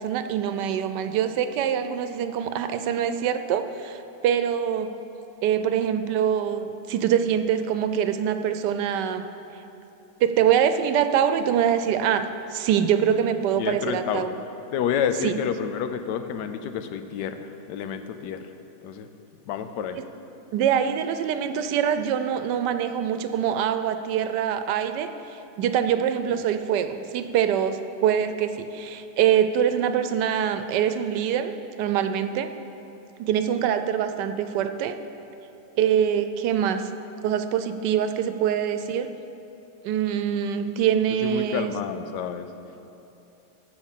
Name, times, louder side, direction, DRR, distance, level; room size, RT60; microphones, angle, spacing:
voice 1, 0.0-4.9 5.4-9.3 10.2-14.3 15.2-15.3 20.5-32.5 33.2-35.0 35.8-36.9 37.2-39.1 39.8-41.7, right 9 dB, 85° right, 10 dB, 1.2 m, -24 dB
voice 2, 13.6-14.4 14.7-18.5 18.8-19.1 19.5-20.0 26.3-26.4 41.2-42.5, left 8 dB, 85° left, 9 dB, 1.2 m, -29 dB
12.5 x 4.8 x 7.3 m, 2.9 s
omnidirectional pair, 1.8 m